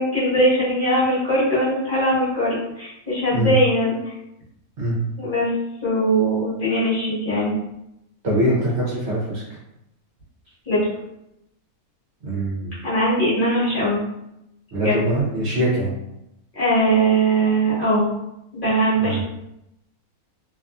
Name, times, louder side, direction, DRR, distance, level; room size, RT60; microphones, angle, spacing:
voice 1, 0.0-4.1 5.2-5.5 5.8-7.5 10.7-10.8 12.8-14.0 14.8-15.0 16.5-18.1 18.5-19.2, right 1 dB, 40° left, -10 dB, 1.1 m, -20 dB
voice 2, 8.2-9.4 12.2-12.7 14.7-15.9 19.0-19.2, right 1 dB, 60° right, -5 dB, 0.8 m, -23 dB
2.6 x 2.4 x 2.3 m, 0.86 s
omnidirectional pair, 1.6 m